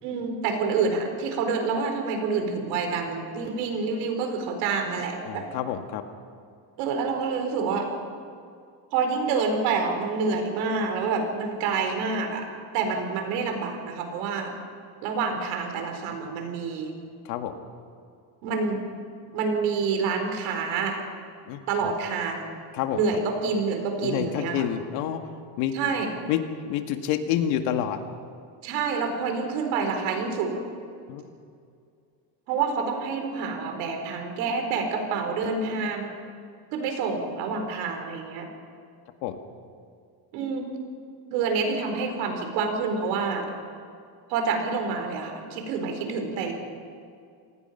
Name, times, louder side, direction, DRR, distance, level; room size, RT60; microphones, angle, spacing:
voice 1, 0.0-5.4 6.8-7.9 8.9-12.5 12.7-14.5 15.0-16.9 18.4-18.8 19.3-21.0 21.7-22.5 22.9-24.7 25.7-26.1 28.6-30.6 32.5-36.2 36.7-38.5 40.3-40.7 41.3-43.5 44.3-46.5, right 4 dB, 90° right, 5 dB, 4.6 m, -27 dB
voice 2, 5.2-6.0 17.2-17.6 21.5-21.9 22.7-23.0 24.0-25.2 25.6-25.7 26.3-26.4 26.7-28.0 31.1-31.3 39.2-39.4, left 10 dB, 90° left, 6 dB, 2.1 m, -28 dB
27.5 x 19.0 x 5.8 m, 2.3 s
cardioid pair, 160°, 44 cm